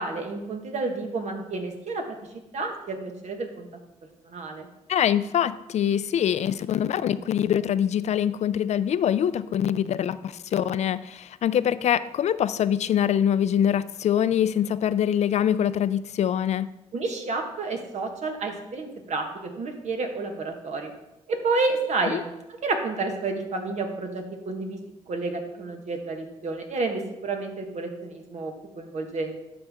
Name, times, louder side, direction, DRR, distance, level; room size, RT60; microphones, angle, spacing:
voice 1, 0.0-2.2 2.5-3.7 4.2-4.7 16.9-20.9 21.3-22.3 22.6-24.8 25.1-29.4, right 3 dB, 60° right, 4 dB, 1.3 m, -30 dB
voice 2, 4.9-16.7 22.0-22.2, left 9 dB, 60° left, 15 dB, 0.4 m, -24 dB
11.5 x 4.2 x 3.6 m, 0.93 s
supercardioid pair, 60°, 13 cm